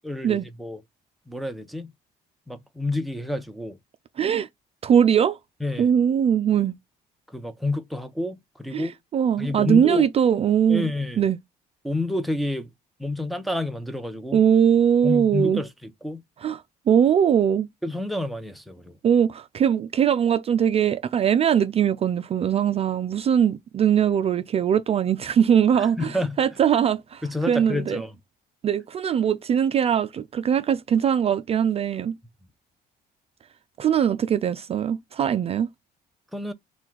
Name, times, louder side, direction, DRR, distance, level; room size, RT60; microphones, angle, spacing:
voice 1, 0.0-0.8 1.3-1.9 2.5-3.8 5.6-5.9 7.3-8.9 9.4-10.1 10.7-11.2 11.8-12.7 13.0-14.4 15.0-16.2 17.8-18.9 25.8-26.4 27.2-28.1 36.3-36.5, left 1 dB, ahead, 0.6 m, -29 dB
voice 2, 4.2-4.5 4.8-5.4 5.8-6.7 8.7-10.9 11.2-11.4 14.3-15.6 16.4-17.7 19.0-28.0 28.6-32.2 33.8-35.7, right 8 dB, 35° right, 0.4 m, -21 dB
4.3 x 2.3 x 3.8 m
cardioid pair, 110°, 17 cm